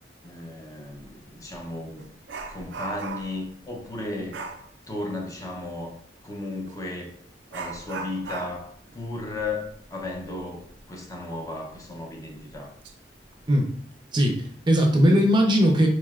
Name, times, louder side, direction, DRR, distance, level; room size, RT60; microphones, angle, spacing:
voice 1, 0.2-2.1 2.5-4.4 4.9-5.9 6.2-7.2 7.5-12.7, left 2 dB, 20° left, 1 dB, 0.5 m, -35 dB
Dog, 0.9-1.1 1.5-3.4 4.3-4.7 6.6-6.8 7.5-10.8 11.1-11.2 11.7-11.8 12.5-12.9 13.3-13.5, right 4 dB, 85° right, 0.5 m, -38 dB
voice 2, 14.1-15.9, equal, 25° right, 1 dB, 0.5 m, -19 dB
4.0 x 3.1 x 2.3 m, 0.63 s
head